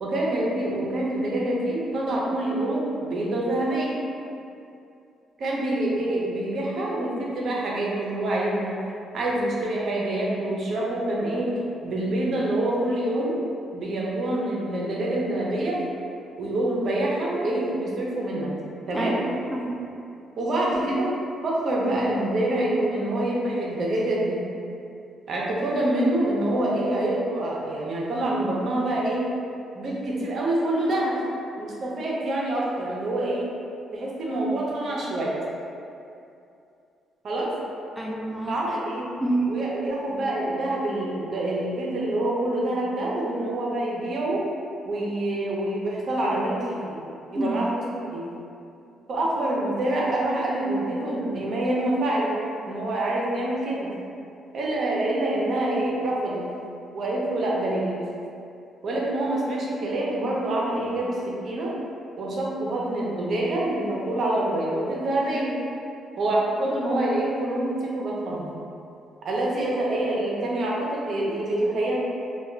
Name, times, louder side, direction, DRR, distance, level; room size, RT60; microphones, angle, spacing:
voice 1, 0.0-4.0 5.4-8.8 9.1-11.5 11.8-13.4 13.7-15.8 16.4-18.6 18.9-19.2 20.4-21.1 21.4-24.4 25.3-29.2 29.7-31.2 31.6-33.5 33.9-35.3 37.2-37.5 38.5-39.1 39.5-44.4 44.8-47.0 47.3-47.8 48.1-48.3 49.1-52.3 52.7-53.9 54.5-56.4 56.9-58.0 58.8-61.7 62.2-65.6 66.2-68.5 69.2-72.0, right 1 dB, 60° right, -4 dB, 0.6 m, -26 dB
voice 2, 18.9-19.8 38.0-38.6 39.2-39.6 47.4-47.7, right 2 dB, 5° left, -2 dB, 0.3 m, -28 dB
2.2 x 2.2 x 3.6 m, 2.6 s
cardioid pair, 90°, 0 cm